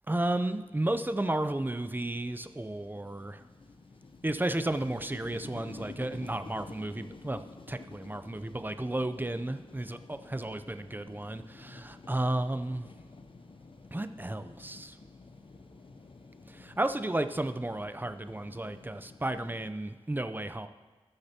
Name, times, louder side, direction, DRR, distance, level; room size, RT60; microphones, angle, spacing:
voice 1, 0.1-3.4 4.2-12.9 13.9-15.0 16.5-20.7, right 1 dB, 15° right, 10 dB, 0.6 m, -33 dB
sound 1, 0.6-19.7, left 3 dB, 50° left, 0.7 m, -51 dB
19.5 x 6.6 x 2.9 m, 1.3 s
cardioid pair, 50°, 11 cm